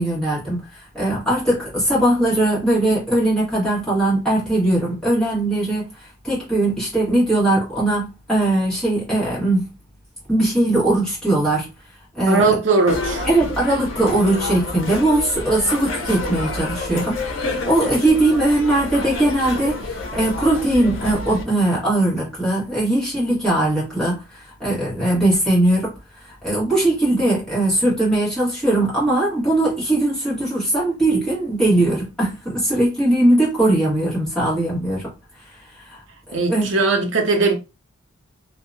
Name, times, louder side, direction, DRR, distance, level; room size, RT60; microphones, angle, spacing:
voice 1, 0.0-5.9 6.2-9.7 10.3-11.7 12.1-12.5 13.2-25.9 26.2-35.1 35.9-36.0 36.3-36.7, right 1 dB, 5° left, 1.2 m, -20 dB
voice 2, 12.3-13.3 36.3-37.5, right 3 dB, 65° right, 0.6 m, -19 dB
sound 1, 12.9-21.4, left 2 dB, 70° left, 0.6 m, -29 dB
2.7 x 2.2 x 2.5 m
head